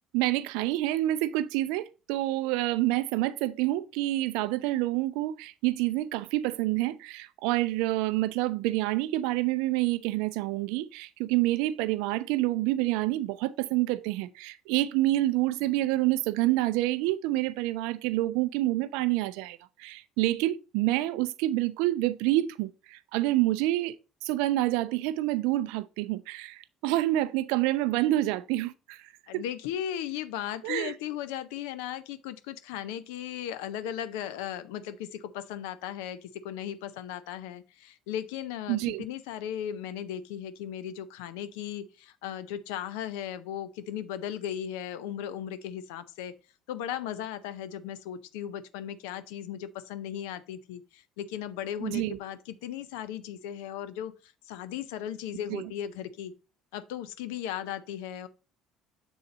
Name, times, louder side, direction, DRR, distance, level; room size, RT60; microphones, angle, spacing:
voice 1, 0.1-24.0 24.2-29.0 30.6-30.9 38.7-39.0 51.8-52.2 55.5-55.7, right 16 dB, 80° right, 0.4 m, -28 dB
voice 2, 29.3-46.3 46.7-56.3 56.7-58.3, left 10 dB, 80° left, 0.5 m, -37 dB
7.2 x 3.9 x 4.1 m
hypercardioid pair, 65°, 0 cm